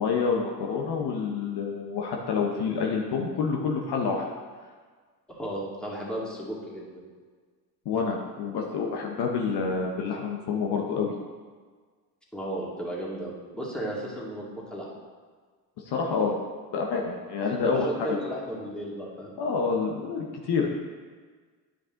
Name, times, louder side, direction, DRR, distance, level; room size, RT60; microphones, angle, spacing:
voice 1, 0.0-4.3 7.8-11.1 15.8-16.4 16.7-18.2 19.4-20.7, left 5 dB, 55° left, 0 dB, 1.1 m, -28 dB
voice 2, 5.3-6.9 12.3-14.9 17.6-19.4, right 1 dB, ahead, -5 dB, 2.4 m, -34 dB
10.0 x 5.3 x 3.8 m, 1.5 s
hypercardioid pair, 75°, 48 cm